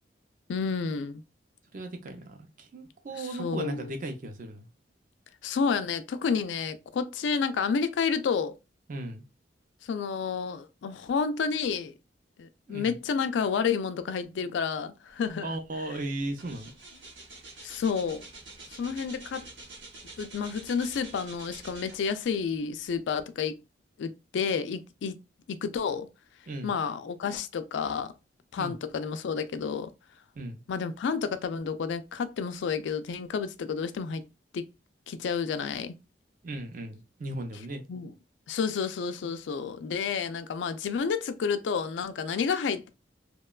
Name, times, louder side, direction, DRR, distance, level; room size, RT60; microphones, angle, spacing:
voice 1, 0.5-1.2 3.2-3.9 5.4-8.5 9.8-11.9 12.4-15.5 15.9-16.0 17.6-18.2 18.7-19.5 20.2-23.6 24.0-25.2 25.5-26.1 26.6-28.1 28.5-29.9 30.7-34.3 34.5-34.6 35.1-36.0 37.9-38.1 38.5-42.9, left 6 dB, 80° left, 0.3 m, -30 dB
voice 2, 1.7-4.7 8.9-9.2 12.7-13.0 15.4-16.7 26.5-26.7 28.6-28.7 30.4-30.6 36.4-37.8, right 2 dB, 50° right, 0.5 m, -36 dB
sound 1, 16.3-22.3 22.9-23.0, right 3 dB, 80° right, 0.8 m, -47 dB
2.9 x 2.2 x 2.2 m
head